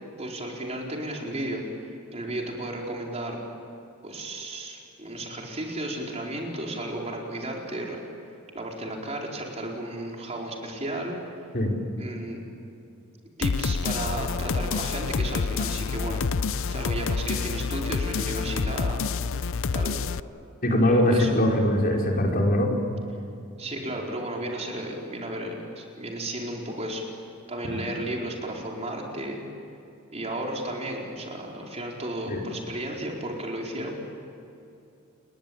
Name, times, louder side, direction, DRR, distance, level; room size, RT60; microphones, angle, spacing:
voice 1, 0.2-1.6 2.1-3.4 4.0-8.0 8.5-11.5 12.0-12.4 13.4-16.2 16.7-19.0 19.7-19.9 20.8-21.3 23.6-27.0 27.5-29.4 30.1-33.9, right 1 dB, 30° right, -1 dB, 4.6 m, -33 dB
sound 1, 13.4-20.2, left 5 dB, 65° left, 0.6 m, -28 dB
voice 2, 20.6-22.7 27.7-27.8 32.3-32.4, left 1 dB, 45° left, 0 dB, 5.1 m, -22 dB
30.0 x 22.0 x 9.0 m, 2.7 s
head